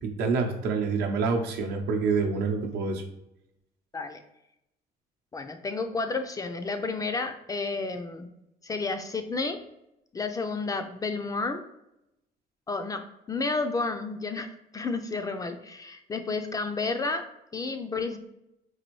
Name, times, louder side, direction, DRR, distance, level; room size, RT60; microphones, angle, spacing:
voice 1, 0.0-3.0, right 4 dB, 75° right, 3 dB, 0.7 m, -27 dB
voice 2, 5.3-8.3 8.6-9.6 10.1-11.6 12.7-13.0 13.3-17.3 17.5-18.2, left 3 dB, 20° left, 7 dB, 0.3 m, -31 dB
4.0 x 2.5 x 3.0 m, 0.85 s
cardioid pair, 110°, 17 cm